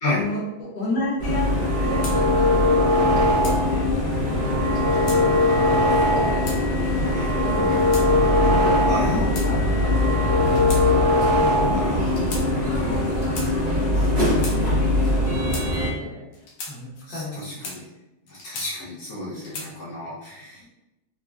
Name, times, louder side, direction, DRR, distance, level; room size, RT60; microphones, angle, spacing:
voice 1, 0.1-8.1 8.5-12.7 13.4-15.6 15.9-16.2 16.7-17.6, left 1 dB, 40° left, -6 dB, 0.7 m, -34 dB
sound 1, 1.2-15.9, left 1 dB, 40° right, 0.6 m, -23 dB
sound 2, 1.5-3.8 4.2-6.5 6.9-9.3 9.6-12.0, left 1 dB, 80° right, 1.2 m, -22 dB
sound 3, 2.0-2.2 3.0-3.6 4.6-5.2 6.0-6.6 7.5-8.1 8.9-9.8 10.5-10.8 11.1-11.3 12.1-12.5 13.1-13.5 14.2-14.6 15.2-15.7 16.3-16.7 17.4-17.8 18.3-18.9 19.4-19.7, left 2 dB, 90° left, 1.4 m, -37 dB
voice 2, 8.9-9.2 11.6-12.3 17.1-17.8 18.3-20.7, left 1 dB, 65° left, -7 dB, 1.1 m, -31 dB
3.6 x 2.0 x 2.3 m, 0.98 s
omnidirectional pair, 2.0 m